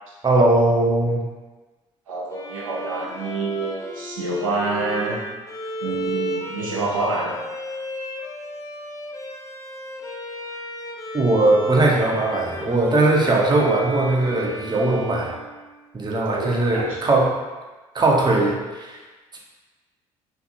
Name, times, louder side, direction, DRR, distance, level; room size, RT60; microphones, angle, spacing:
voice 1, 0.2-1.2 11.1-15.3 15.9-17.3 17.9-19.0 19.3-19.4, right 2 dB, 25° right, -2 dB, 0.6 m, -19 dB
voice 2, 2.1-5.2 5.8-7.3 16.3-17.0, right 3 dB, 90° right, -4 dB, 0.6 m, -27 dB
Bowed string instrument, 2.3-16.2, equal, 20° left, 0.4 m, -34 dB
2.6 x 2.5 x 2.6 m, 1.2 s
hypercardioid pair, 55°, 17 cm